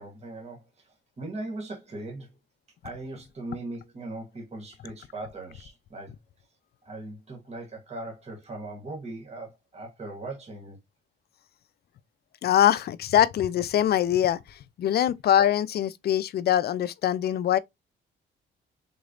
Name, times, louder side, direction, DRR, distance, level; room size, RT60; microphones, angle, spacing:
voice 1, 0.0-2.3 2.8-6.1 6.8-10.8, right 2 dB, 35° right, 1.3 m, -39 dB
voice 2, 12.4-14.4 14.8-17.6, left 11 dB, 55° left, 0.4 m, -23 dB
3.8 x 3.1 x 2.4 m
cardioid pair, 90°, 20 cm